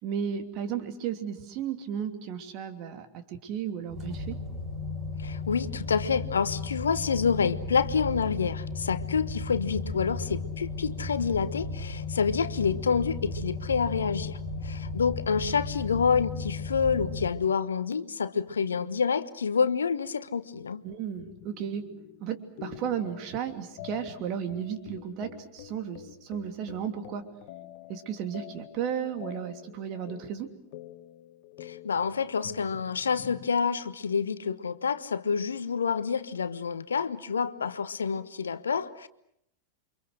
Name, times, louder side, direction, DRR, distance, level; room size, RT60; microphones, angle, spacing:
voice 1, 0.0-4.4 20.8-21.9 22.2-27.3 27.9-30.5, right 8 dB, 40° right, 2.9 m, -34 dB
sound 1, 3.9-17.3, left 3 dB, 25° right, 6.1 m, -35 dB
voice 2, 5.2-14.4 14.6-20.8 31.6-39.1, left 6 dB, 70° left, 1.1 m, -28 dB
sound 2, 21.2-33.5, left 12 dB, 45° left, 1.9 m, -47 dB
29.5 x 25.0 x 6.4 m
figure-of-eight pair, 90°, 0 cm